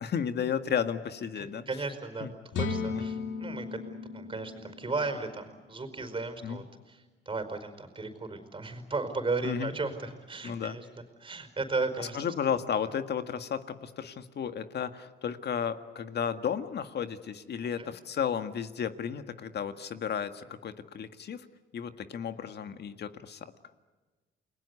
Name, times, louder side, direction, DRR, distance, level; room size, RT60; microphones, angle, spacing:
voice 1, 0.0-1.6 2.2-2.3 2.9-3.3 6.4-6.6 9.4-9.7 10.4-10.8 12.0-21.5 21.7-23.5, left 7 dB, 55° left, 9 dB, 1.9 m, -33 dB
voice 2, 1.4-2.3 2.6-3.7 4.1-10.9 11.2-12.2 17.8-17.9, right 3 dB, 25° right, 8 dB, 5.0 m, -35 dB
sound 1, 2.5-6.3, left 4 dB, 75° left, 2.7 m, -36 dB
29.5 x 21.0 x 8.3 m, 1.3 s
cardioid pair, 90°, 20 cm